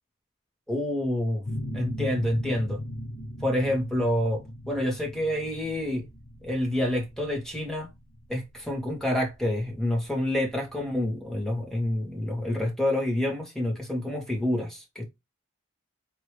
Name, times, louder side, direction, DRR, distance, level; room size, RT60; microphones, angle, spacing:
voice 1, 0.7-1.5 1.7-2.8 3.4-6.1 6.4-7.9 8.3-15.0, left 1 dB, 5° left, 1.4 m, -28 dB
sound 1, 1.5-10.9, equal, 85° left, 1.4 m, -39 dB
4.6 x 3.0 x 3.1 m
head